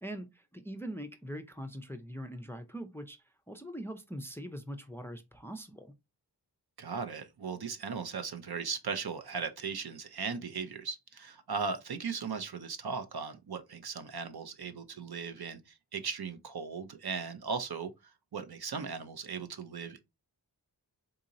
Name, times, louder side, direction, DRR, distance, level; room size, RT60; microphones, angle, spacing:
voice 1, 0.0-5.9, equal, 5° left, 0.4 m, -42 dB
voice 2, 6.8-15.6 15.9-17.9 18.3-20.0, right 5 dB, 65° right, 0.6 m, -37 dB
3.9 x 2.8 x 2.5 m
wide cardioid pair, 45°, 42 cm